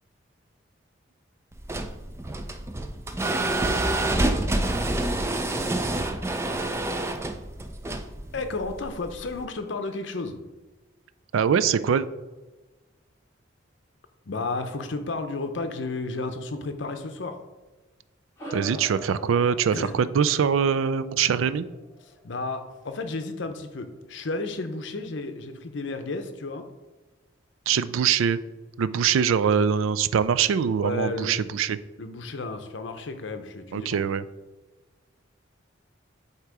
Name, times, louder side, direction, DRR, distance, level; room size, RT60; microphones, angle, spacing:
sound 1, 1.5-9.4, right 1 dB, 15° right, 0.3 m, -27 dB
voice 1, 8.3-10.4 14.3-17.4 19.7-19.9 22.2-26.7 30.8-31.4 32.0-34.0, left 3 dB, 70° left, 7 dB, 0.7 m, -32 dB
voice 2, 11.3-12.1 18.5-21.7 27.7-28.4 28.8-31.8 33.7-34.2, right 7 dB, 90° right, 14 dB, 0.3 m, -23 dB
sound 2, 18.4-23.1, equal, 15° left, 2.0 m, -43 dB
8.0 x 2.9 x 4.7 m, 1.2 s
head